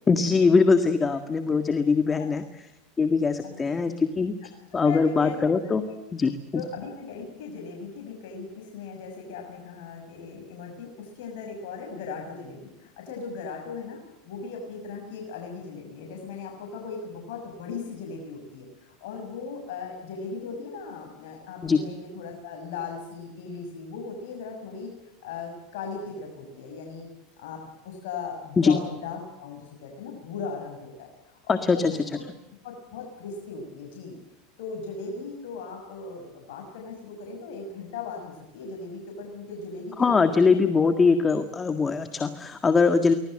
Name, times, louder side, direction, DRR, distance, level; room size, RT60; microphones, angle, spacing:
voice 1, 0.1-2.4 3.0-4.3 4.7-5.8 6.1-6.6 21.6-21.8 28.6-28.8 31.5-32.0 40.0-43.1, left 4 dB, 20° left, 9 dB, 1.8 m, -22 dB
voice 2, 4.7-5.9 6.5-24.9 25.2-27.1 27.4-32.2 32.6-34.2 34.6-40.6, left 5 dB, 75° left, 1 dB, 6.5 m, -38 dB
24.5 x 19.5 x 7.8 m, 0.95 s
supercardioid pair, 120°, 0 cm